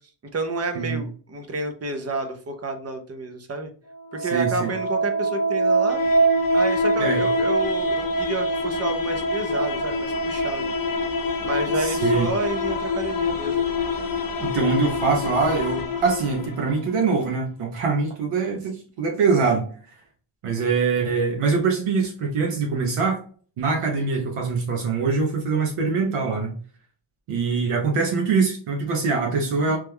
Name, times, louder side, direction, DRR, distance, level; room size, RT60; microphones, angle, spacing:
voice 1, 0.3-3.7 4.1-6.0 6.5-10.7 11.4-13.6, right 2 dB, 35° right, 6 dB, 0.4 m, -30 dB
sound 1, 3.9-16.9, equal, 45° left, 0.6 m, -24 dB
voice 2, 4.2-4.7 7.0-7.2 11.8-12.3 14.4-19.7 20.4-23.2 23.6-26.5 27.3-29.8, right 4 dB, 90° right, 0 dB, 0.8 m, -23 dB
3.1 x 2.2 x 3.3 m, 0.42 s
wide cardioid pair, 155°, 50 cm